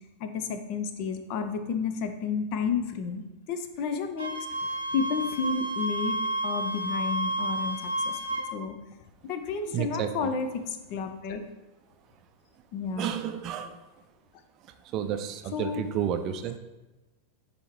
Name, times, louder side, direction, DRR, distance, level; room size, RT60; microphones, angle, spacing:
voice 1, 0.2-4.3 4.6-6.2 6.4-8.8 9.2-11.4 12.7-13.1 15.5-15.8, left 5 dB, 45° left, 8 dB, 0.6 m, -31 dB
Wind instrument woodwind instrument, 4.2-8.5, right 1 dB, 85° right, 0.8 m, -31 dB
voice 2, 9.7-10.3 13.0-13.8 14.9-16.6, right 9 dB, 35° right, 8 dB, 0.5 m, -31 dB
9.8 x 3.4 x 3.1 m, 1.1 s
figure-of-eight pair, 90°, 0 cm